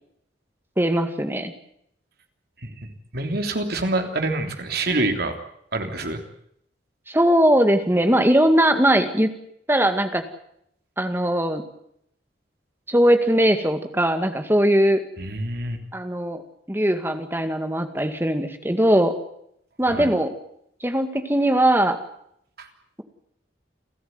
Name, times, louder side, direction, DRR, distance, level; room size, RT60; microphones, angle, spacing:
voice 1, 0.8-1.5 7.1-9.3 9.7-10.2 11.0-11.6 12.9-15.0 15.9-16.4 16.7-19.2 19.8-20.3 20.8-22.0, right 1 dB, 10° right, 7 dB, 2.0 m, -20 dB
voice 2, 2.6-5.3 5.7-6.2 15.2-15.8 19.9-20.1 22.6-22.7, right 2 dB, 55° right, 5 dB, 3.4 m, -26 dB
29.0 x 13.5 x 9.5 m, 0.73 s
head